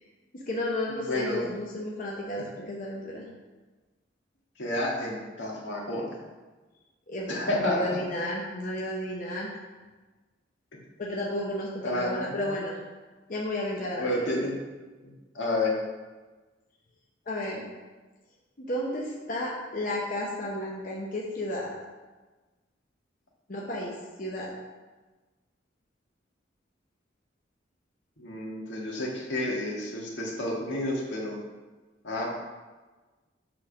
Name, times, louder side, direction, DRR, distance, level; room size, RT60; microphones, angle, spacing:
voice 1, 0.3-3.2 7.1-9.5 11.0-12.7 13.3-14.3 17.3-17.7 18.6-21.7 23.5-24.5, left 1 dB, 45° left, -4 dB, 0.9 m, -33 dB
voice 2, 1.0-1.4 2.4-2.5 4.6-6.2 7.3-8.0 11.8-12.6 14.0-14.6 15.0-15.7 28.2-31.4 32.0-32.3, left 1 dB, 80° left, -3 dB, 1.8 m, -30 dB
7.5 x 3.6 x 5.8 m, 1.3 s
head